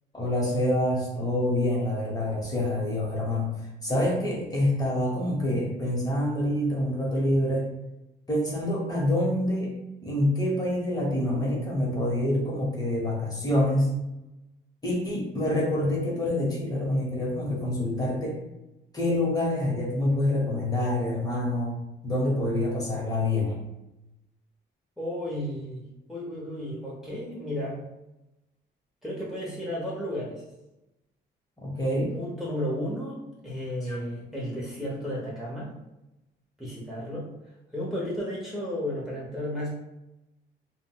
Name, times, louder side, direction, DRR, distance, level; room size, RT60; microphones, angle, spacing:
voice 1, 0.1-3.5 3.8-7.7 8.3-9.7 10.0-13.9 14.8-18.4 18.9-21.8 22.0-23.6 31.6-32.1 33.9-34.0, left 1 dB, 20° left, -4 dB, 1.1 m, -26 dB
voice 2, 25.0-27.8 29.0-30.4 32.1-35.7 36.6-37.3 37.7-39.7, left 1 dB, ahead, -7 dB, 0.9 m, -33 dB
3.8 x 2.3 x 2.2 m, 0.94 s
cardioid pair, 90°, 20 cm